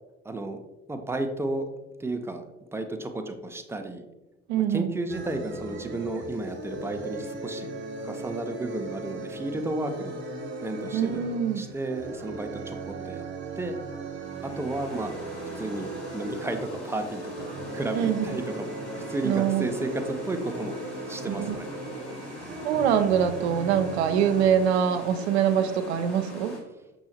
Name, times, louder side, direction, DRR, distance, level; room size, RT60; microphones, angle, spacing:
voice 1, 0.2-0.6 0.9-1.7 2.0-2.4 2.7-4.0 4.6-7.7 8.0-10.2 10.6-13.3 13.6-13.8 14.6-15.2 15.6-16.6 16.8-20.8 21.1-21.7, right 2 dB, 10° right, 6 dB, 0.4 m, -33 dB
voice 2, 4.5-4.9 10.9-11.7 17.9-18.4 19.2-19.7 21.3-21.6 22.6-26.6, right 8 dB, 75° right, 9 dB, 0.5 m, -24 dB
sound 1, 5.1-24.5, right 3 dB, 35° right, 0.7 m, -38 dB
sound 2, 14.2-26.6, left 1 dB, 85° left, 1.0 m, -42 dB
6.2 x 2.9 x 2.8 m, 1.0 s
figure-of-eight pair, 55°, 33 cm